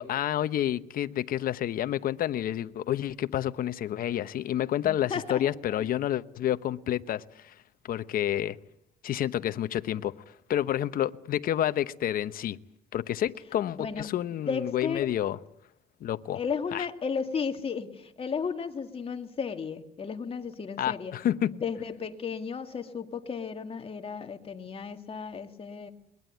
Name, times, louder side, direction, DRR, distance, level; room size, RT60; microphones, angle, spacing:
voice 1, 0.0-7.5 7.8-8.6 9.0-10.1 10.5-12.6 12.9-15.4 16.0-16.4 16.7-16.9 20.8-21.5, left 11 dB, 60° left, 1.0 m, -29 dB
voice 2, 4.8-5.9 13.7-14.1 14.5-15.1 16.3-21.1 21.5-25.9, left 6 dB, 35° left, 2.2 m, -34 dB
22.0 x 20.5 x 9.4 m
cardioid pair, 110°, 17 cm